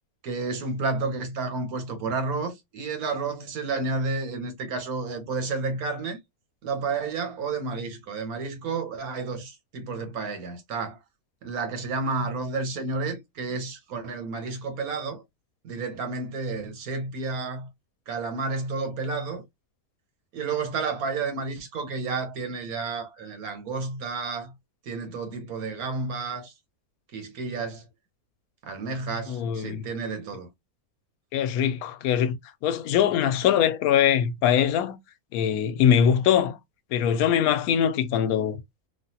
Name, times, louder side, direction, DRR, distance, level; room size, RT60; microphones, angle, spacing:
voice 1, 0.2-6.2 6.6-11.0 11.4-15.2 15.6-17.7 18.1-19.4 20.3-24.5 24.8-26.5 27.1-27.8 28.6-30.5, right 4 dB, 90° right, 1.4 m, -31 dB
voice 2, 29.3-29.9 31.3-32.4 32.6-35.0 35.3-36.6 36.9-38.6, left 9 dB, 85° left, 1.1 m, -22 dB
3.2 x 2.4 x 2.7 m
omnidirectional pair, 1.5 m